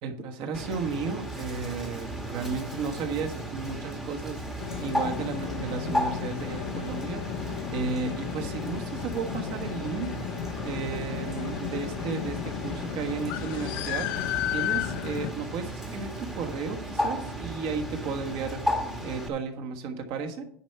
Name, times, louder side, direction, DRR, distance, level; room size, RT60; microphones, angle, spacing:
voice 1, 0.0-4.4 4.8-10.2 10.6-14.1 14.5-18.6 19.0-20.4, right 5 dB, 40° right, 4 dB, 1.4 m, -34 dB
Bird, 0.5-19.3, equal, ahead, 1.2 m, -35 dB
sound 1, 4.6-15.3, left 11 dB, 55° left, 0.6 m, -34 dB
10.0 x 4.5 x 6.7 m, 0.64 s
supercardioid pair, 145°, 14 cm